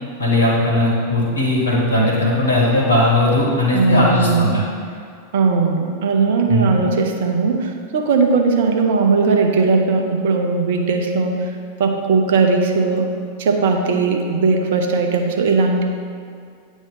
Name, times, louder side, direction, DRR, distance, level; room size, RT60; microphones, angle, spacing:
voice 1, 0.2-4.6 6.5-6.7, left 1 dB, 75° left, -4 dB, 1.5 m, -17 dB
voice 2, 3.7-4.6 5.3-11.5 11.8-13.1 13.4-15.8, right 4 dB, 55° right, 3 dB, 0.7 m, -18 dB
8.9 x 3.0 x 3.9 m, 2.3 s
figure-of-eight pair, 90°, 0 cm